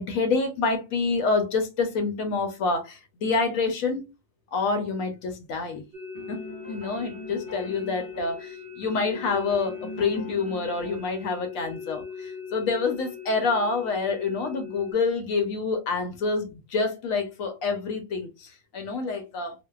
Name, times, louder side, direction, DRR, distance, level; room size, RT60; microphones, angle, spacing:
voice 1, 0.0-4.1 4.5-5.8 6.3-6.4 6.7-19.5, left 4 dB, 65° left, 0.9 m, -27 dB
sound 1, 5.9-14.9, left 6 dB, 55° right, 0.7 m, -40 dB
sound 2, 6.1-8.5 8.8-11.2, left 1 dB, 15° right, 0.8 m, -42 dB
2.6 x 2.1 x 2.2 m
omnidirectional pair, 1.7 m